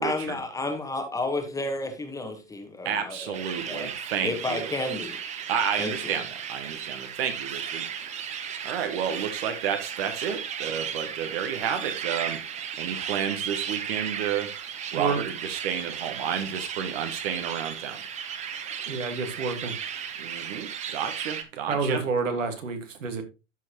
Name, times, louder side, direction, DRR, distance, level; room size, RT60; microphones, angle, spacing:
voice 1, 0.0-3.9 4.2-5.2 5.8-6.2, left 2 dB, 10° left, 1.3 m, -32 dB
voice 2, 2.8-4.7 5.5-6.2 6.5-7.9 8.2-8.3 8.6-12.4 12.8-14.5 14.9-18.0 20.2-22.0, right 8 dB, 50° right, 1.1 m, -31 dB
sound 1, 3.3-21.4, right 8 dB, 20° right, 0.8 m, -35 dB
voice 3, 18.9-19.7 21.7-23.2, right 4 dB, 80° right, 1.8 m, -28 dB
12.5 x 4.5 x 2.9 m
hypercardioid pair, 115°, 38 cm